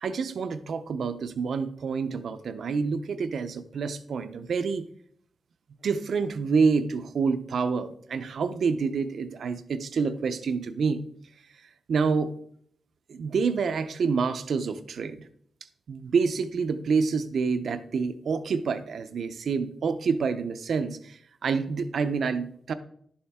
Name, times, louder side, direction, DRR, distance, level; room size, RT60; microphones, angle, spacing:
voice 1, 0.0-4.8 5.8-11.0 11.9-12.3 13.1-15.3 15.9-22.7, right 5 dB, 65° right, 11 dB, 0.7 m, -27 dB
11.5 x 7.1 x 3.6 m, 0.64 s
wide cardioid pair, 175°, 0 cm